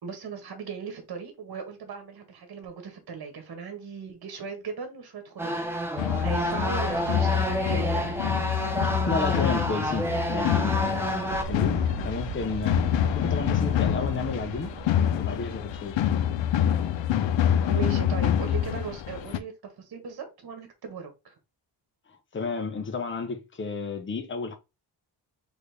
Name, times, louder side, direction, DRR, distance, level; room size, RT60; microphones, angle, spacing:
voice 1, 0.0-8.2 15.0-15.1 17.7-21.3, right 6 dB, 55° right, 1.4 m, -38 dB
sound 1, 5.4-11.4, equal, 5° right, 0.6 m, -29 dB
sound 2, 6.0-19.4, left 10 dB, 90° left, 0.6 m, -26 dB
voice 2, 8.8-14.7 15.1-16.1 22.3-24.6, left 4 dB, 25° left, 0.8 m, -32 dB
Fowl, 11.3-16.6, right 9 dB, 85° right, 0.7 m, -38 dB
4.2 x 3.4 x 3.4 m
wide cardioid pair, 145°, 43 cm